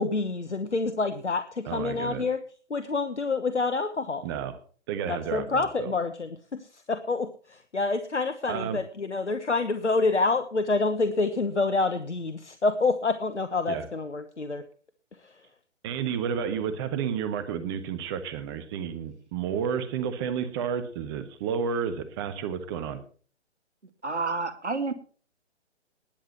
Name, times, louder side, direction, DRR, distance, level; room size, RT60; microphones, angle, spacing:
voice 1, 0.0-2.4 2.7-4.3 5.1-6.3 6.9-14.6, left 3 dB, 80° left, 11 dB, 1.1 m, -27 dB
voice 2, 1.7-2.2 4.2-4.6 4.9-5.9 8.5-8.8 13.7-13.9 15.8-23.0, right 7 dB, 20° right, 11 dB, 1.3 m, -31 dB
voice 3, 24.0-24.9, right 3 dB, 75° right, 11 dB, 2.1 m, -29 dB
19.5 x 7.5 x 4.3 m, 0.42 s
figure-of-eight pair, 130°, 35 cm